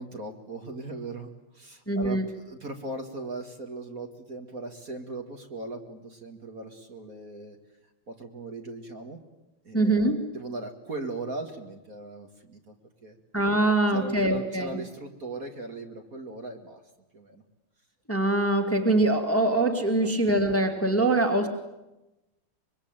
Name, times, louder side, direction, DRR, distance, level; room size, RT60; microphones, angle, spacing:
voice 1, 0.0-7.6 8.1-9.2 9.6-12.7 13.0-13.2 13.7-16.8 17.1-17.4 19.9-20.1, right 2 dB, 40° right, 4 dB, 2.4 m, -39 dB
voice 2, 1.9-2.3 9.7-10.2 13.3-14.8 18.1-21.5, right 2 dB, 5° left, 5 dB, 2.1 m, -23 dB
25.0 x 23.5 x 9.0 m, 0.97 s
omnidirectional pair, 2.4 m